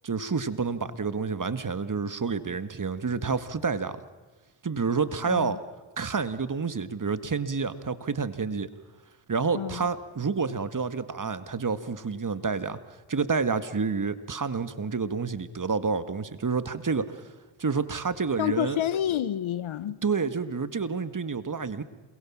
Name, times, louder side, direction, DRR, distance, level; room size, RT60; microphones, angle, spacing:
voice 1, 0.0-4.0 4.6-5.6 6.0-8.7 9.3-12.8 13.1-17.2 17.6-18.8 20.0-21.8, right 5 dB, 40° right, 1.8 m, -29 dB
voice 2, 5.3-5.6 9.5-9.9 18.4-20.0, left 11 dB, 70° left, 1.1 m, -29 dB
28.0 x 22.5 x 7.4 m
supercardioid pair, 45°, 49 cm